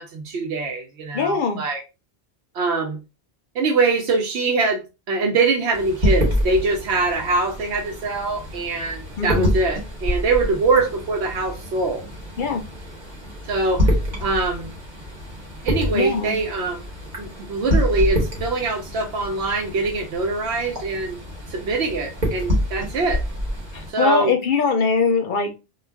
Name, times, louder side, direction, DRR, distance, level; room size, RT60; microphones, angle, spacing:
voice 1, 0.0-1.8 2.5-3.0 3.5-4.8 5.1-12.1 13.4-13.9 14.2-14.7 15.6-16.8 17.2-21.2 21.5-23.2 23.9-24.3, right 3 dB, 85° right, 0.9 m, -23 dB
voice 2, 1.1-1.6 9.2-9.5 12.4-12.6 15.9-16.4 23.7-25.6, left 5 dB, 60° left, 0.6 m, -22 dB
sound 1, 5.7-23.9, left 1 dB, 50° right, 1.1 m, -27 dB
2.3 x 2.2 x 3.2 m
omnidirectional pair, 1.1 m